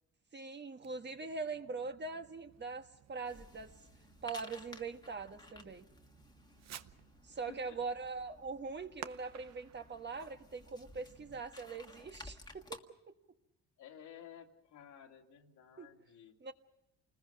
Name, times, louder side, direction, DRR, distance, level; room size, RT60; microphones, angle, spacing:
voice 1, 0.3-3.7 4.2-5.8 7.2-12.8 15.8-15.9 16.4-16.5, right 4 dB, 35° right, 7 dB, 1.5 m, -42 dB
Fireworks, 0.8-11.5, right 10 dB, 60° right, 0.8 m, -57 dB
sound 1, 3.2-12.8, left 2 dB, 15° left, 1.6 m, -55 dB
voice 2, 7.3-7.8 13.8-16.4, left 8 dB, 80° left, 2 dB, 2.5 m, -54 dB
28.5 x 20.5 x 5.9 m, 0.85 s
cardioid pair, 90°, 30 cm